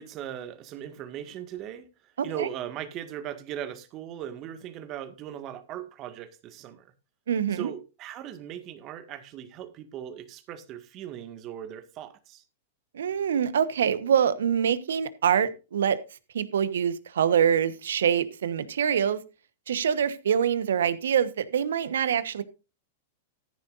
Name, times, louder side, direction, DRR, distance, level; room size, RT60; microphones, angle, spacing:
voice 1, 0.0-6.9 7.5-12.4, right 10 dB, 40° right, 1.9 m, -39 dB
voice 2, 7.3-7.7 12.9-16.0 16.3-19.2 19.7-22.4, right 8 dB, 75° right, 1.2 m, -25 dB
14.0 x 10.5 x 2.6 m
hypercardioid pair, 105°, 0 cm